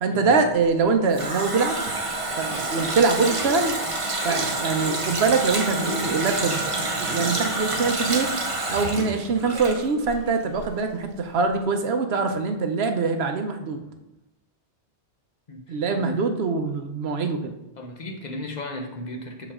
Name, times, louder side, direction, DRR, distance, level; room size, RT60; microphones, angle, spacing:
voice 1, 0.0-1.8 2.4-3.7 4.2-6.6 7.0-8.3 8.7-13.9 15.7-17.5, right 4 dB, 65° right, 6 dB, 1.0 m, -23 dB
Water tap faucet, 0.7-10.3 10.5-10.7, right 2 dB, 30° right, 0.9 m, -28 dB
voice 2, 15.5-16.2 17.8-19.5, left 1 dB, 40° left, 3 dB, 1.0 m, -35 dB
6.8 x 5.1 x 3.6 m, 0.95 s
omnidirectional pair, 1.2 m